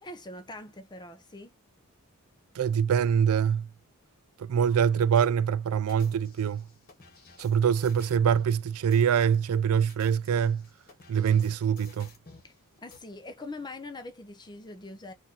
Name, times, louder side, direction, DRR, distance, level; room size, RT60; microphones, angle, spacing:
voice 1, 0.0-1.5 7.3-7.4 12.4-12.5 12.8-15.1, left 2 dB, 20° left, 0.7 m, -43 dB
voice 2, 2.6-3.7 4.4-6.6 7.4-10.7 11.1-12.1, right 7 dB, 80° right, 0.4 m, -24 dB
sound 1, 5.0-5.3 5.9-8.5 8.9-9.3 9.8-12.5 12.9-13.0, left 4 dB, 45° left, 1.3 m, -53 dB
4.1 x 2.6 x 4.2 m
head